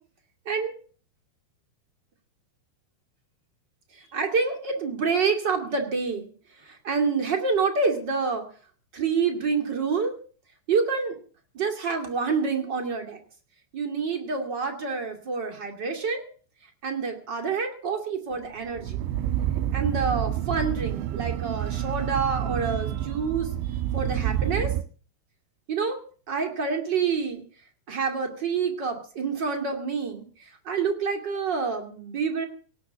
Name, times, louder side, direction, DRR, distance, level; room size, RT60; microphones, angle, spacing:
voice 1, 4.1-6.3 6.8-8.4 8.9-10.2 10.7-11.2 11.5-13.2 13.7-16.2 16.8-19.0 19.7-23.5 23.9-24.7 25.7-26.0 26.3-27.4 27.9-30.3 30.7-32.4, right 5 dB, 35° right, 3 dB, 2.0 m, -27 dB
sound 1, 18.4-24.8, right 11 dB, 80° right, 3.0 m, -28 dB
18.0 x 7.0 x 9.8 m, 0.42 s
omnidirectional pair, 5.3 m